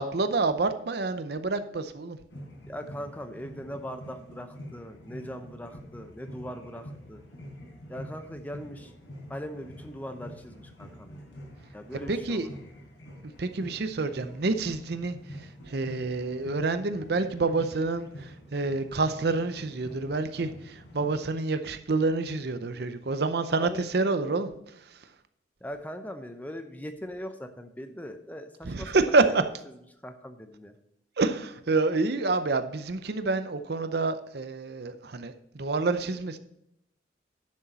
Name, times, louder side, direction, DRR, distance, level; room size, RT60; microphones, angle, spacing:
voice 1, 0.0-2.2 12.1-12.5 13.2-25.1 28.6-29.4 31.2-36.4, right 3 dB, 55° right, 10 dB, 0.6 m, -28 dB
sound 1, 2.3-21.4, equal, 80° left, 4.2 m, -46 dB
voice 2, 2.7-7.2 7.9-8.9 9.3-11.2 11.7-12.5 23.6-23.8 25.6-29.0 29.3-29.5 30.0-30.7, equal, 10° left, 7 dB, 0.6 m, -40 dB
11.0 x 6.4 x 4.2 m, 0.79 s
head